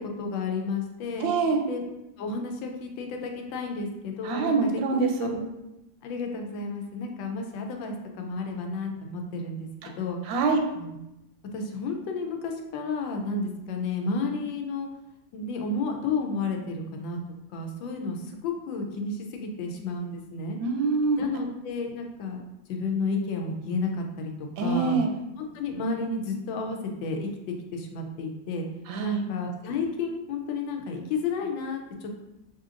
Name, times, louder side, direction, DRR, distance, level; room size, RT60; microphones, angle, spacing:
voice 1, 0.0-1.3 1.7-1.8 2.2-4.7 5.0-5.5 6.0-9.7 10.0-10.2 10.7-11.0 11.5-14.9 15.3-17.2 17.5-20.6 21.2-22.4 22.7-24.3 24.6-25.0 25.4-27.3 27.7-28.7 29.0-32.2, left 3 dB, 85° left, 3 dB, 1.3 m, -31 dB
voice 2, 1.2-1.6 4.2-5.3 9.8-9.9 10.2-10.6 20.6-21.2 24.6-25.1 28.9-29.3, right 4 dB, 85° right, 3 dB, 1.3 m, -25 dB
4.8 x 2.8 x 2.4 m, 0.93 s
omnidirectional pair, 2.0 m